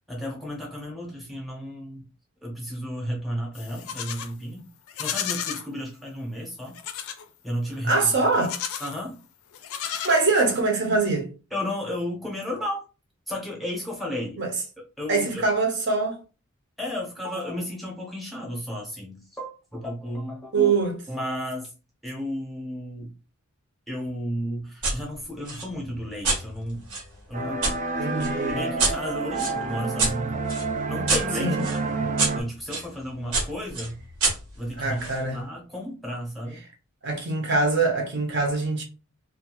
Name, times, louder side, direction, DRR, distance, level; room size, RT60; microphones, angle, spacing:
voice 1, 0.1-2.0 2.4-4.7 5.0-6.8 7.4-8.3 8.8-9.2 11.5-12.8 13.3-14.4 15.0-15.4 16.8-20.7 21.1-21.7 22.0-23.1 23.9-26.8 27.3-27.7 28.0-30.4 30.9-32.1 32.4-34.0 34.6-36.6, equal, ahead, 0.7 m, -33 dB
Livestock farm animals working animals, 3.5-4.3 4.9-5.7 6.7-7.2 8.3-9.0 9.5-10.6, left 9 dB, 75° left, 0.4 m, -33 dB
voice 2, 7.8-8.6 10.0-11.3 14.4-14.5 15.1-16.2 20.5-21.0 28.0-28.6 31.4-31.6 34.8-35.4 37.0-38.8, right 3 dB, 50° right, 0.7 m, -23 dB
sound 1, 24.8-25.0 25.4-27.8 28.2-32.9 33.3-35.2, right 3 dB, 80° right, 1.1 m, -28 dB
sound 2, 27.3-32.4, right 3 dB, 35° right, 0.4 m, -29 dB
2.6 x 2.4 x 2.9 m
head